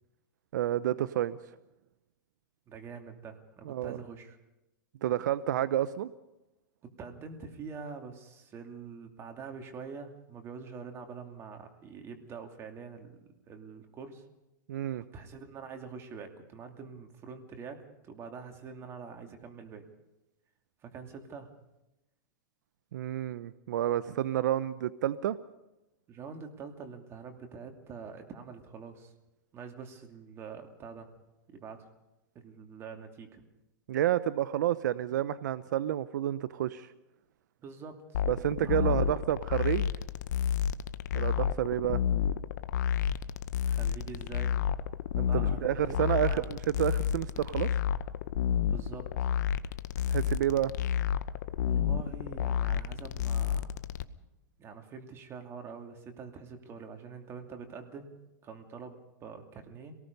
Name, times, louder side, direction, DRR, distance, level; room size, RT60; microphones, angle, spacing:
voice 1, 0.5-1.4 3.7-4.0 5.0-6.1 14.7-15.0 22.9-25.4 33.9-36.9 38.3-39.9 41.1-42.0 45.2-47.7 50.1-50.7, right 12 dB, 70° right, 15 dB, 0.7 m, -30 dB
voice 2, 2.7-4.4 7.0-13.2 13.5-14.3 15.1-19.9 20.8-21.5 26.1-29.1 29.5-31.1 31.5-31.9 32.3-33.4 37.6-38.2 38.6-39.1 43.6-44.7 45.2-46.5 48.7-49.3 51.6-53.7 54.1-54.2 54.6-59.9, right 5 dB, 25° right, 4 dB, 2.7 m, -45 dB
sound 1, 38.1-54.0, left 9 dB, 65° left, 0.9 m, -30 dB
26.5 x 19.0 x 5.4 m, 0.95 s
hypercardioid pair, 140°, 10 cm